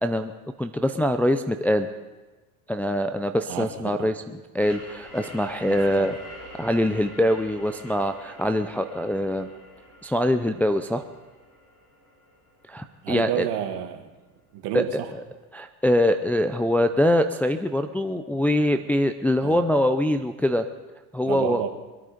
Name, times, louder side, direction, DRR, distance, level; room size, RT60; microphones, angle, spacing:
voice 1, 0.0-0.3 0.6-1.9 2.7-4.1 4.5-6.1 6.6-9.5 10.0-11.1 12.7-13.5 14.7-15.0 15.5-20.6 21.1-21.6, left 1 dB, 5° left, 6 dB, 0.5 m, -23 dB
voice 2, 3.5-4.1 5.7-6.2 13.0-14.1 14.5-15.1 19.4-19.6 21.2-21.7, right 12 dB, 60° right, 6 dB, 2.0 m, -31 dB
sound 1, 4.6-13.9, left 1 dB, 35° left, 5.8 m, -46 dB
23.0 x 9.2 x 5.1 m, 1.2 s
supercardioid pair, 100°, 46 cm